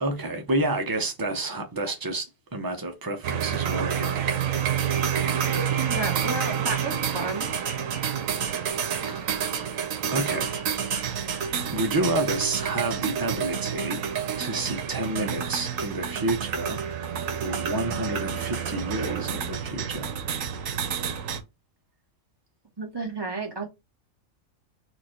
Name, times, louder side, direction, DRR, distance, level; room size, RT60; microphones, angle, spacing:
voice 1, 0.0-4.2 9.1-9.8 10.1-10.6 11.7-14.1 14.4-16.8 17.1-20.1, right 2 dB, 35° right, 0.3 m, -30 dB
sound 1, 3.2-21.4, right 8 dB, 85° right, 1.2 m, -29 dB
voice 2, 5.6-7.5 22.8-23.7, right 3 dB, 20° right, 1.2 m, -32 dB
4.5 x 2.5 x 4.3 m
omnidirectional pair, 1.3 m